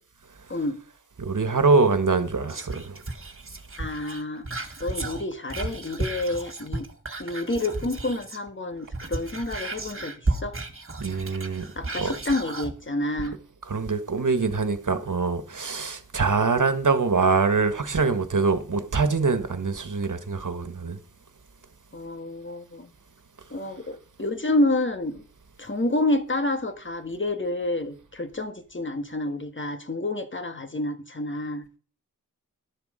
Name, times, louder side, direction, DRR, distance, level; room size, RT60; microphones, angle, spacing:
voice 1, 1.2-3.0 11.0-11.7 12.0-12.2 13.7-21.0, right 4 dB, 65° right, 1.6 m, -24 dB
Whispering, 2.5-8.5 8.8-12.7 13.2-13.3, right 2 dB, 40° right, 1.8 m, -33 dB
voice 2, 3.8-6.8 7.2-10.6 11.7-13.4 21.9-22.9 23.5-25.2 25.6-31.7, left 2 dB, 35° left, 1.7 m, -29 dB
12.5 x 7.1 x 5.1 m
wide cardioid pair, 45°, 33 cm